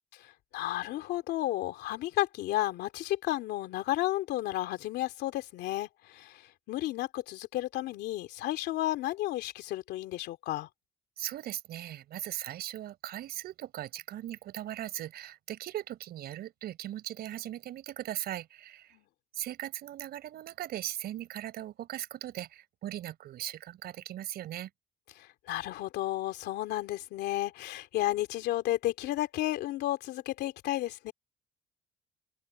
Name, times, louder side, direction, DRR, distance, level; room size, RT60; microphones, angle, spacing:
voice 1, 0.1-10.7 18.9-19.0 25.2-31.1, left 15 dB, 80° left, 2.9 m, -32 dB
voice 2, 11.2-19.0 19.3-24.7, right 13 dB, 70° right, 6.1 m, -39 dB
cardioid pair, 110°, 17 cm